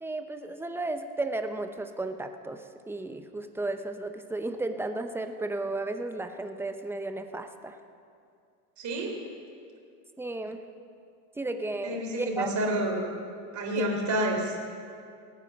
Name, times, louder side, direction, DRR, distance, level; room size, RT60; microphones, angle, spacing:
voice 1, 0.0-7.8 10.2-10.7 11.4-12.5 13.8-13.9, right 2 dB, 5° right, 7 dB, 0.7 m, -34 dB
voice 2, 8.8-9.1 11.8-13.0 13.5-14.6, right 1 dB, 35° right, 1 dB, 3.6 m, -29 dB
18.0 x 9.6 x 6.1 m, 2.3 s
supercardioid pair, 110°, 50 cm